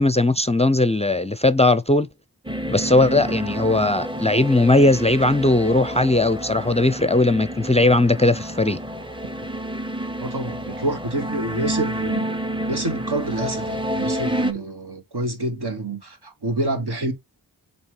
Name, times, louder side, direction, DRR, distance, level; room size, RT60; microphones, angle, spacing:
voice 1, 0.0-2.1 2.7-8.8, left 2 dB, 15° left, 0.4 m, -18 dB
sound 1, 2.4-14.5, right 1 dB, 10° right, 0.7 m, -29 dB
voice 2, 10.2-12.2 12.7-17.1, right 2 dB, 70° right, 1.6 m, -27 dB
7.2 x 2.9 x 4.7 m
wide cardioid pair, 55°, 40 cm